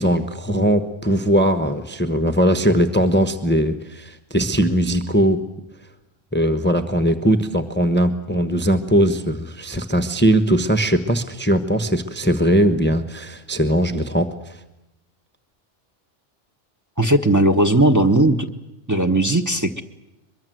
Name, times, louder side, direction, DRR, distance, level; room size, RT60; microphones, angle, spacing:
voice 1, 0.0-5.4 6.3-14.3, equal, 10° left, 7 dB, 1.0 m, -19 dB
voice 2, 17.0-18.5 18.9-19.8, right 1 dB, 15° right, 3 dB, 1.2 m, -17 dB
23.0 x 23.0 x 7.8 m, 0.96 s
omnidirectional pair, 1.3 m